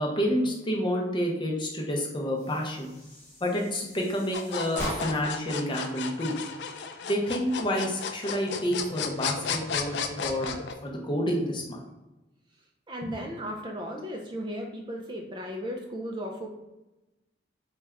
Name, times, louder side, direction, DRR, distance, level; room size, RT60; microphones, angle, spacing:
voice 1, 0.0-2.9 3.4-6.4 7.0-11.8 13.0-13.1, equal, 25° left, 0 dB, 0.6 m, -29 dB
sound 1, 2.3-5.5, equal, 10° left, 1.0 m, -40 dB
sound 2, 4.3-10.7, left 6 dB, 65° left, 0.3 m, -33 dB
voice 2, 12.9-16.5, equal, 25° right, 1 dB, 0.4 m, -35 dB
4.0 x 2.3 x 3.3 m, 1.0 s
head